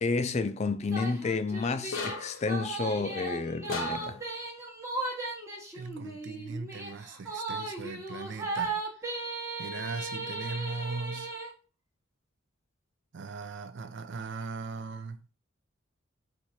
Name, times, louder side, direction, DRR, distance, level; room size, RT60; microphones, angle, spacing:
voice 1, 0.0-4.2, left 4 dB, 35° left, 0.4 m, -30 dB
sound 1, 0.8-11.5, right 3 dB, 15° right, 1.0 m, -36 dB
sound 2, 1.9-2.5 3.7-4.3, left 5 dB, 80° left, 0.7 m, -36 dB
voice 2, 5.7-9.1 9.6-11.3 13.1-15.2, right 4 dB, 60° right, 0.5 m, -39 dB
4.5 x 2.5 x 4.1 m
head